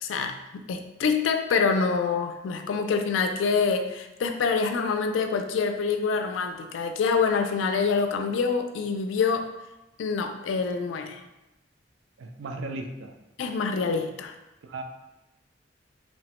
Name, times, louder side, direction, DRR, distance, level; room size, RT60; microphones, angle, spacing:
voice 1, 0.0-9.5 10.0-11.2 13.4-14.4, left 5 dB, 80° left, 6 dB, 0.3 m, -26 dB
voice 2, 12.2-13.2 14.6-14.8, right 2 dB, 90° right, 4 dB, 0.4 m, -36 dB
3.1 x 2.1 x 2.9 m, 0.96 s
head